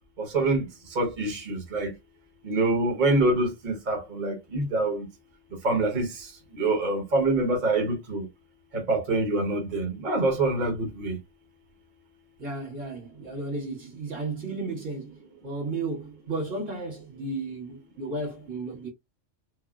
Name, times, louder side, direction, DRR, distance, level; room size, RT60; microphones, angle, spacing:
voice 1, 0.2-1.9 2.4-5.1 5.6-6.3 6.6-8.3 8.7-11.2, right 2 dB, 40° right, 1.1 m, -26 dB
voice 2, 12.4-18.9, right 3 dB, 80° right, 1.7 m, -34 dB
3.5 x 2.0 x 2.3 m
omnidirectional pair, 1.3 m